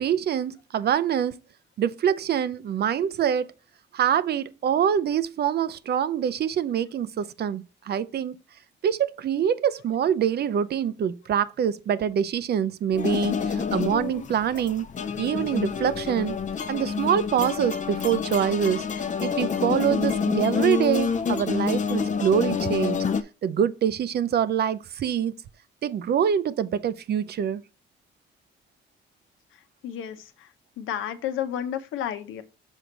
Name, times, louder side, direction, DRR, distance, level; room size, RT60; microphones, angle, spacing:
voice 1, 0.0-1.4 1.8-3.5 3.9-8.4 8.8-14.9 15.2-16.4 16.7-23.1 23.4-25.3 25.8-27.6, right 8 dB, 55° right, 0.6 m, -25 dB
sound 1, 12.9-23.2, left 6 dB, 40° left, 0.6 m, -28 dB
voice 2, 29.8-30.5 30.8-32.4, left 10 dB, 85° left, 0.9 m, -31 dB
6.4 x 4.5 x 3.9 m
cardioid pair, 90°, 20 cm